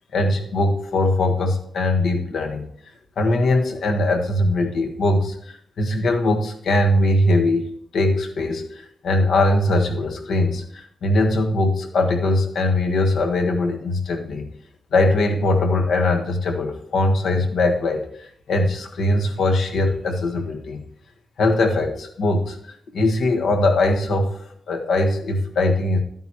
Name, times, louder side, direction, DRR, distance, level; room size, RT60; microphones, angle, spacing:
voice 1, 0.1-2.6 3.2-7.6 7.9-14.5 14.9-20.8 21.4-24.4 24.7-26.0, left 2 dB, 80° left, 3 dB, 1.4 m, -21 dB
11.5 x 9.1 x 3.0 m, 0.66 s
wide cardioid pair, 135°, 0 cm